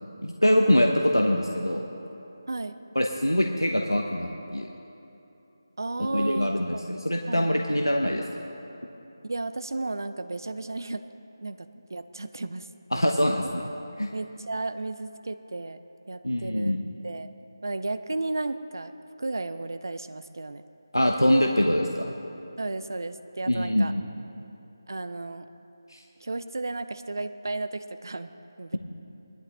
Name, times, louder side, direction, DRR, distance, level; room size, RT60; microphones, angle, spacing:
voice 1, 0.2-1.8 2.9-4.7 6.1-8.2 12.9-13.7 14.0-14.1 16.2-16.8 20.9-22.1 23.5-24.0 25.9-26.0, equal, 90° left, 2 dB, 0.9 m, -24 dB
voice 2, 2.5-2.8 5.8-6.8 7.3-7.7 9.2-11.0 11.4-13.3 14.1-15.8 16.1-16.8 17.0-17.3 17.6-18.9 19.2-20.6 22.6-23.9 24.9-25.5 26.2-28.3 28.6-28.8, right 2 dB, 60° right, 11 dB, 0.6 m, -34 dB
19.0 x 11.5 x 3.7 m, 3.0 s
figure-of-eight pair, 160°, 2 cm